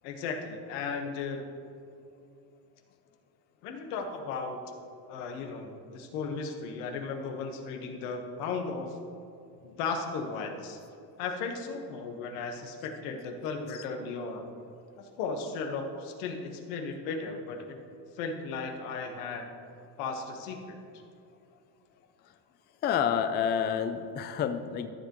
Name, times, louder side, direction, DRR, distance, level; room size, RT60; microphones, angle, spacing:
voice 1, 0.0-1.4 3.6-4.6 5.1-8.9 9.6-10.8 11.2-14.4 15.2-17.8 18.1-19.4 20.0-20.8, left 4 dB, 85° left, 3 dB, 1.4 m, -35 dB
voice 2, 22.8-24.9, left 8 dB, 25° left, 8 dB, 0.4 m, -28 dB
14.0 x 7.0 x 3.1 m, 2.5 s
cardioid pair, 125°, 45 cm